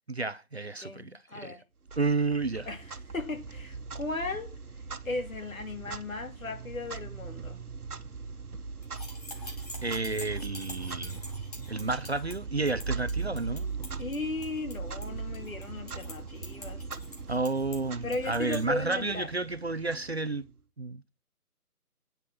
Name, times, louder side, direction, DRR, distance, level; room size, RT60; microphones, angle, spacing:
voice 1, 0.1-1.6 1.9-2.7 9.8-11.2 11.7-13.7 17.3-20.4 20.8-21.0, right 3 dB, 45° right, 0.6 m, -31 dB
voice 2, 0.8-1.6 2.7-4.6 5.0-7.6 14.0-16.8 18.0-19.3, left 2 dB, 60° left, 3.0 m, -36 dB
Clock, 1.9-20.6, right 4 dB, 75° right, 1.4 m, -40 dB
sound 1, 8.8-18.6, left 2 dB, 25° left, 2.1 m, -47 dB
9.5 x 7.1 x 6.0 m
figure-of-eight pair, 165°, 45 cm